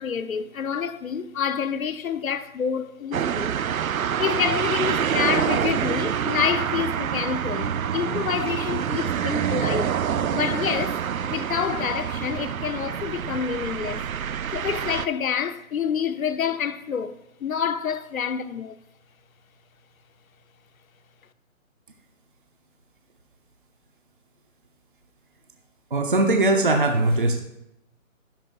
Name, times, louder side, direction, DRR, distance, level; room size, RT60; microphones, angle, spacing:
voice 1, 0.0-3.6 4.2-10.0 10.3-14.1 14.5-18.8, left 7 dB, 80° left, 0.7 m, -28 dB
sound 1, 3.1-15.1, right 8 dB, 90° right, 0.6 m, -26 dB
voice 2, 25.9-27.4, right 2 dB, 40° right, 0.7 m, -20 dB
11.0 x 10.5 x 2.3 m
hypercardioid pair, 180°, 41 cm